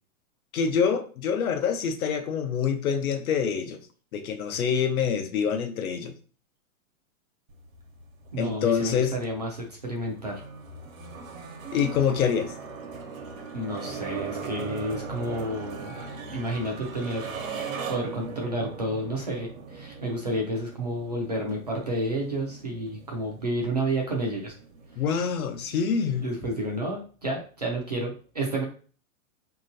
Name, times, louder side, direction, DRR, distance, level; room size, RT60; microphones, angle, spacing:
voice 1, 0.5-3.8 4.1-6.1 8.4-9.1 11.7-12.5 25.0-26.3, left 7 dB, 80° left, 7 dB, 0.8 m, -26 dB
sound 1, 7.5-26.8, right 4 dB, 65° right, 0.9 m, -40 dB
voice 2, 8.3-10.4 13.5-16.0 16.3-17.4 17.9-24.5 26.2-28.6, right 1 dB, 30° right, -2 dB, 0.4 m, -30 dB
4.3 x 2.9 x 2.6 m, 0.40 s
supercardioid pair, 180°, 42 cm